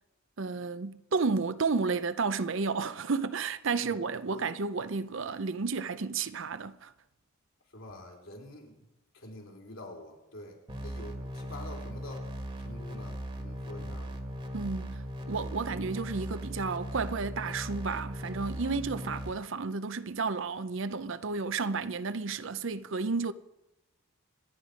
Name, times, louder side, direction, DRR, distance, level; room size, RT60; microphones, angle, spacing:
voice 1, 0.4-6.9 14.5-23.3, right 4 dB, 60° right, 0.6 m, -32 dB
voice 2, 7.7-8.8 9.1-12.3 12.6-14.2, left 1 dB, 70° left, 3.9 m, -47 dB
sound 1, 10.7-19.3, equal, 25° right, 1.6 m, -38 dB
26.5 x 9.9 x 5.1 m
head